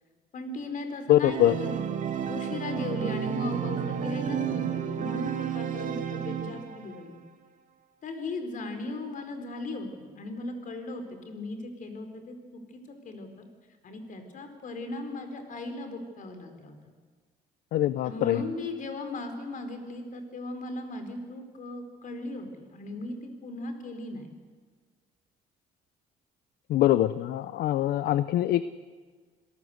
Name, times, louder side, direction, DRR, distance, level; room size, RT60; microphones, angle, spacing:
voice 1, 0.3-1.8 2.3-7.2 8.0-13.5 13.8-16.8 18.0-24.3, left 2 dB, 50° left, 7 dB, 4.4 m, -37 dB
voice 2, 1.1-1.5 17.7-18.4 26.7-28.6, left 13 dB, 70° left, 15 dB, 0.7 m, -23 dB
Organ, 1.3-7.0, right 8 dB, 50° right, 2.3 m, -31 dB
26.5 x 18.0 x 8.1 m, 1.5 s
cardioid pair, 110°, 17 cm